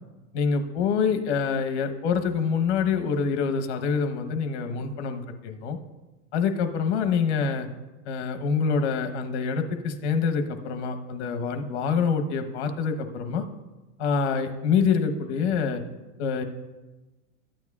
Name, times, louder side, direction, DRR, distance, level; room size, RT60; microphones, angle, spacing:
voice 1, 0.3-5.8 6.3-7.7 8.0-13.4 14.0-15.8 16.2-16.4, left 5 dB, 60° left, 7 dB, 1.1 m, -26 dB
13.5 x 9.0 x 2.4 m, 1.1 s
supercardioid pair, 170°, 38 cm